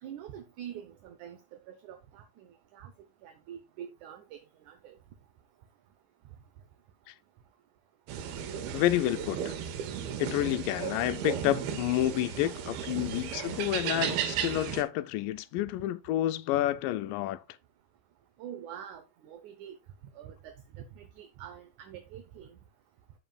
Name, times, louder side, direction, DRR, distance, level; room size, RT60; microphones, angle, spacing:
voice 1, 0.0-2.9 3.2-5.0 13.1-13.2 18.4-19.8 20.1-22.6, right 9 dB, 75° right, 1.9 m, -46 dB
sound 1, 8.1-14.8, right 9 dB, 90° right, 3.1 m, -35 dB
voice 2, 8.7-9.5 10.2-17.4, left 14 dB, 80° left, 2.0 m, -29 dB
16.0 x 5.5 x 2.3 m
omnidirectional pair, 4.3 m